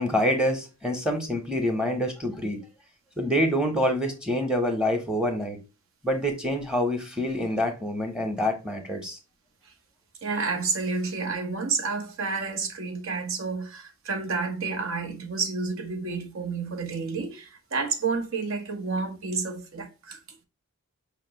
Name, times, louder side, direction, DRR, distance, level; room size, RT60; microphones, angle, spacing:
voice 1, 0.0-2.6 3.2-5.6 6.0-9.2, equal, 5° right, 0.9 m, -26 dB
voice 2, 10.2-20.2, right 4 dB, 65° right, 0.8 m, -30 dB
5.0 x 2.9 x 2.8 m
head